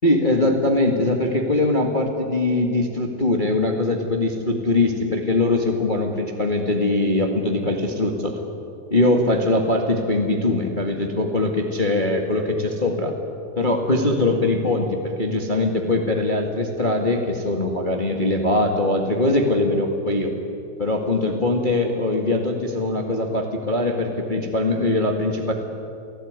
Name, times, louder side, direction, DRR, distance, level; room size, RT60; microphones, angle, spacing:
voice 1, 0.0-8.4 8.9-13.1 13.5-20.3 20.8-25.5, left 2 dB, 50° left, 2 dB, 0.5 m, -21 dB
29.0 x 18.0 x 9.6 m, 2.7 s
omnidirectional pair, 4.5 m